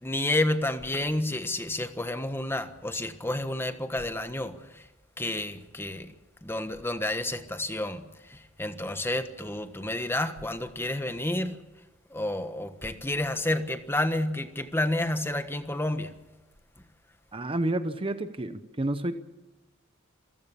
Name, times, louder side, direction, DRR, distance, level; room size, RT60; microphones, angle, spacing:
voice 1, 0.0-4.8 5.2-6.1 6.4-11.6 12.1-16.1, left 1 dB, 10° left, 1.3 m, -30 dB
voice 2, 17.3-19.1, right 1 dB, 25° right, 0.9 m, -30 dB
27.5 x 15.5 x 7.1 m
head